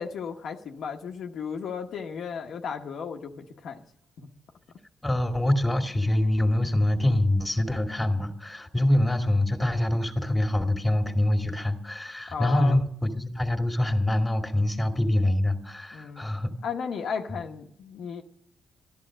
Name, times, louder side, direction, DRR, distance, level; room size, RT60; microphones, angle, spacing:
voice 1, 0.0-3.8 4.2-4.3 12.3-12.8 15.9-16.3 16.6-18.2, left 6 dB, 65° left, 3 dB, 1.1 m, -34 dB
voice 2, 5.0-16.5, left 1 dB, 10° left, 5 dB, 2.3 m, -25 dB
13.5 x 11.0 x 6.3 m, 0.70 s
cardioid pair, 90°, 0 cm